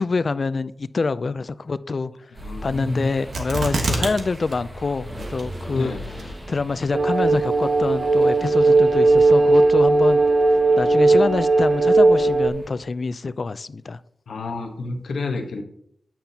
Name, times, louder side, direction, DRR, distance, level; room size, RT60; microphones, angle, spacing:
voice 1, 0.0-2.1 2.6-5.9 6.5-10.2 10.8-14.0, left 4 dB, 50° left, 15 dB, 0.3 m, -26 dB
sound 1, 2.3-12.7, right 1 dB, 25° right, 1.0 m, -39 dB
voice 2, 2.4-3.1 3.9-4.1 5.7-6.0 14.3-15.6, left 3 dB, 85° left, 2 dB, 1.0 m, -29 dB
sound 2, 3.3-4.2 4.5-4.6 5.2-5.7 6.2-6.3, right 2 dB, 75° right, 1.1 m, -25 dB
sound 3, 6.9-12.5, right 3 dB, 50° right, 0.4 m, -17 dB
8.6 x 5.8 x 2.8 m, 0.71 s
wide cardioid pair, 85°, 0 cm